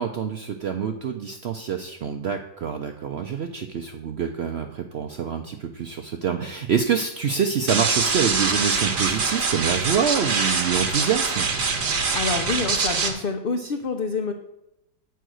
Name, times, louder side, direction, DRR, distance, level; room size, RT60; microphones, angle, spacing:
voice 1, 0.0-11.5, right 7 dB, 70° right, 5 dB, 0.6 m, -26 dB
sound 1, 7.7-13.1, right 4 dB, 45° right, 1.1 m, -24 dB
voice 2, 12.1-14.3, left 4 dB, 80° left, 5 dB, 0.5 m, -27 dB
7.8 x 4.6 x 6.2 m, 0.86 s
omnidirectional pair, 1.8 m